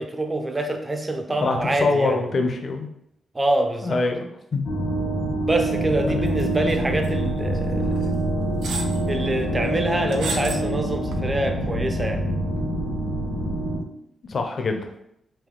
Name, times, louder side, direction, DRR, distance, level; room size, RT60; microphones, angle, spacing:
voice 1, 0.0-2.2 3.3-4.0 5.4-8.1 9.1-12.3, right 1 dB, 15° right, 4 dB, 0.5 m, -26 dB
voice 2, 1.4-2.9 3.8-4.3 4.5-4.6 6.1-6.2 14.3-14.9, left 3 dB, 40° left, 5 dB, 0.5 m, -24 dB
sound 1, 4.6-13.8, right 1 dB, 85° left, 1.1 m, -25 dB
sound 2, 6.4-6.8 7.0-7.1 8.0-8.1 8.6-9.0 10.1-10.6 11.1-11.2, right 4 dB, 85° right, 0.5 m, -31 dB
3.4 x 2.7 x 3.8 m, 0.76 s
wide cardioid pair, 135°, 0 cm